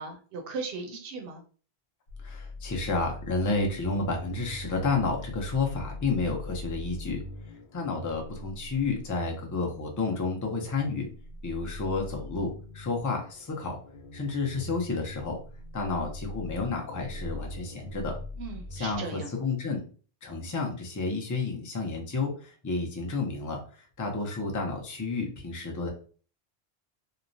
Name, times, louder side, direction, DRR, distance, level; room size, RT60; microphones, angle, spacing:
voice 1, 0.0-1.4 18.4-19.3, right 4 dB, 70° right, 4 dB, 0.7 m, -37 dB
sound 1, 2.1-19.0, left 1 dB, 80° left, 0.9 m, -42 dB
voice 2, 2.2-7.2 7.7-11.1 11.4-13.8 14.1-15.4 15.7-18.2 18.7-19.8 20.2-23.6 24.0-25.9, left 3 dB, 30° left, 1 dB, 0.4 m, -31 dB
2.9 x 2.1 x 2.6 m, 0.40 s
omnidirectional pair, 1.1 m